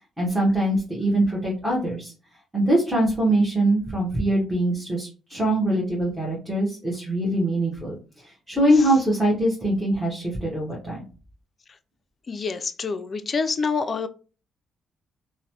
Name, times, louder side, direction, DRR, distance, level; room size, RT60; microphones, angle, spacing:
voice 1, 0.2-2.1 2.5-11.0, right 1 dB, 5° right, -4 dB, 1.0 m, -23 dB
voice 2, 12.3-14.1, left 5 dB, 40° left, 11 dB, 0.3 m, -26 dB
3.0 x 2.0 x 2.8 m, 0.35 s
cardioid pair, 90°, 0 cm